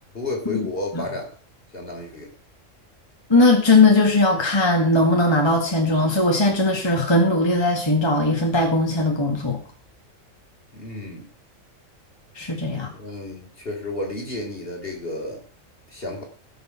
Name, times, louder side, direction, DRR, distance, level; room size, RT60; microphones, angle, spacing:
voice 1, 0.1-1.3 1.7-2.3 10.7-11.3 12.9-15.4 15.9-16.2, left 2 dB, 45° left, 0 dB, 3.9 m, -32 dB
voice 2, 3.3-9.6 12.4-12.9, left 2 dB, 20° left, 1 dB, 2.0 m, -19 dB
18.0 x 6.6 x 5.9 m, 0.41 s
omnidirectional pair, 1.3 m